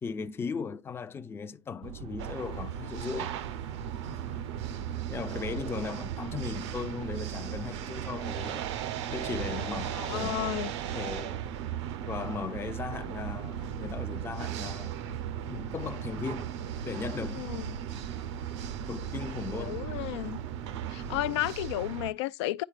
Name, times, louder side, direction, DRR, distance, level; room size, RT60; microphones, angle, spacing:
voice 1, 0.0-3.4 5.1-8.7 9.1-10.5 10.9-11.5 12.1-15.0 15.4-16.5 16.8-17.5 18.9-19.8, left 5 dB, 15° left, 0.5 m, -37 dB
sound 1, 1.8-21.5, right 10 dB, 45° right, 0.5 m, -40 dB
sound 2, 2.2-22.1, right 9 dB, 80° right, 0.9 m, -38 dB
voice 2, 9.9-10.7 17.3-17.6 19.6-20.4 20.9-22.6, left 15 dB, 75° left, 0.5 m, -32 dB
10.0 x 4.4 x 2.4 m
supercardioid pair, 125°, 15 cm